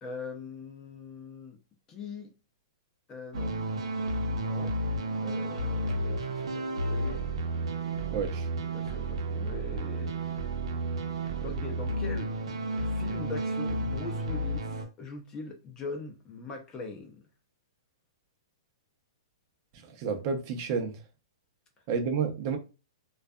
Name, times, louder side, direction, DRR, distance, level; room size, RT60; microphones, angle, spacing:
voice 1, 0.0-1.6 1.9-2.3 3.1-3.5 4.4-4.8 5.2-7.2 8.7-10.1 11.4-12.4 12.7-17.2, left 4 dB, 20° left, 0.5 m, -41 dB
sound 1, 3.3-14.9, right 1 dB, 85° right, 0.7 m, -32 dB
voice 2, 8.1-8.5 19.8-20.9 21.9-22.6, right 5 dB, 40° right, 0.6 m, -30 dB
2.5 x 2.3 x 2.2 m
hypercardioid pair, 150°, 3 cm